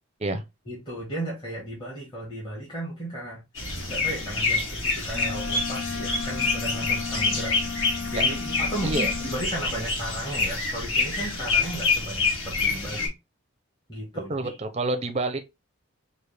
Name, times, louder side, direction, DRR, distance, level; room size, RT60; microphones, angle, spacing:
voice 1, 0.7-13.1 13.9-14.5, right 1 dB, 20° left, 1.5 m, -35 dB
sound 1, 3.5-13.1, left 4 dB, 70° left, 1.5 m, -27 dB
Wind instrument woodwind instrument, 5.1-9.5, left 6 dB, 50° left, 0.6 m, -35 dB
voice 2, 14.3-15.4, right 2 dB, 30° right, 0.5 m, -28 dB
4.8 x 2.4 x 3.3 m
head